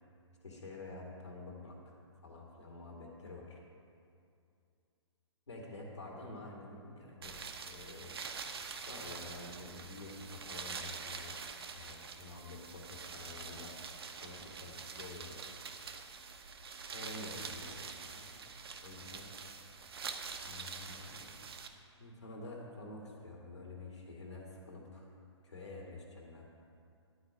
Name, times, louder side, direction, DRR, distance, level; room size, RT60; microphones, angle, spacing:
voice 1, 0.4-1.9 2.2-3.6 5.5-8.2 8.9-13.7 14.2-15.4 16.9-18.3 18.8-19.3 20.4-21.3 22.0-25.1 25.4-26.5, left 2 dB, 65° left, -2 dB, 2.0 m, -48 dB
sound 1, 7.2-21.7, right 5 dB, 55° right, 0.9 m, -45 dB
11.5 x 5.0 x 8.2 m, 2.5 s
figure-of-eight pair, 125°, 15 cm